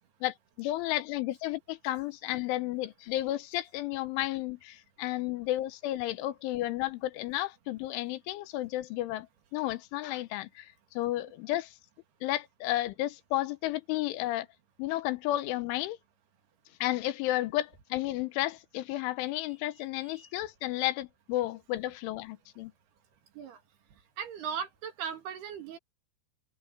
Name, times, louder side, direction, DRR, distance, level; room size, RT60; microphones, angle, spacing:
voice 1, 0.2-9.3 9.5-11.7 12.2-14.5 14.8-16.0 16.8-22.7, left 15 dB, 85° left, 3.5 m, -32 dB
voice 2, 24.2-25.8, right 7 dB, 60° right, 3.9 m, -38 dB
open air
omnidirectional pair, 5.4 m